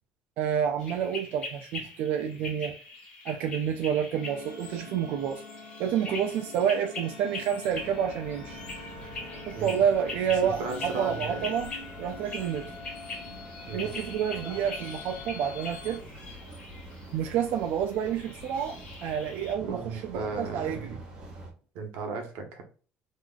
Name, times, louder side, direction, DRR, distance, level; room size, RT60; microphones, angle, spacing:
voice 1, 0.4-2.7 3.2-5.4 5.8-8.6 9.5-12.7 13.7-16.0 17.1-21.0, right 8 dB, 60° right, 0.5 m, -29 dB
sound 1, 0.8-19.5, left 3 dB, 30° left, 1.3 m, -43 dB
sound 2, 4.1-16.0, left 4 dB, 65° left, 1.4 m, -45 dB
sound 3, 7.7-21.5, right 1 dB, 25° right, 1.2 m, -46 dB
voice 2, 10.4-11.5 13.7-13.9 19.6-20.9 21.7-22.6, right 4 dB, 90° right, 1.2 m, -35 dB
3.6 x 3.1 x 2.3 m
cardioid pair, 170°, 4 cm